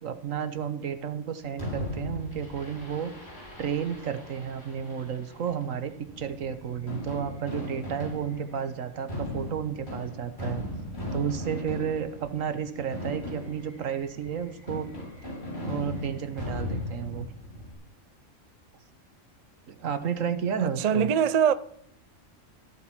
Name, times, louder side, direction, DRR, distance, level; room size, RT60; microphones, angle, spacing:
voice 1, 0.0-3.1 3.6-10.6 11.1-14.9 15.6-17.3 19.7-21.1, right 8 dB, 80° right, 1.5 m, -32 dB
Fireworks, 1.6-17.7, left 1 dB, 55° left, 5.2 m, -38 dB
voice 2, 20.6-21.5, right 8 dB, 45° right, 0.5 m, -23 dB
13.5 x 12.5 x 4.4 m
omnidirectional pair, 1.3 m